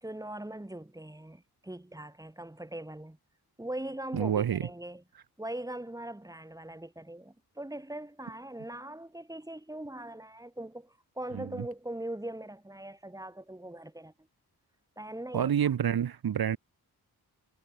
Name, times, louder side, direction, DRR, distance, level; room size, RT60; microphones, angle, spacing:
voice 1, 0.0-3.2 3.6-5.0 5.4-14.1 15.0-15.7, right 1 dB, 10° right, 2.9 m, -41 dB
voice 2, 4.1-4.6 11.3-11.4 15.3-16.6, right 9 dB, 70° right, 1.0 m, -28 dB
wide cardioid pair, 115°, 37 cm